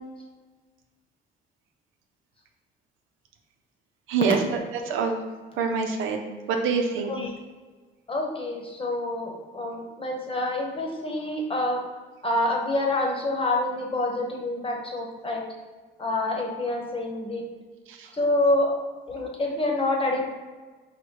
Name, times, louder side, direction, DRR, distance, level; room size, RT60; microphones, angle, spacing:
voice 1, 4.1-4.6 4.8-5.2 5.6-7.1 17.9-18.1, right 5 dB, 90° right, 4 dB, 0.5 m, -26 dB
voice 2, 8.1-11.8 12.2-15.4 16.0-17.4 18.2-18.7 19.1-20.3, left 2 dB, 25° left, 0 dB, 0.9 m, -27 dB
4.4 x 2.1 x 4.4 m, 1.3 s
cardioid pair, 90°, 20 cm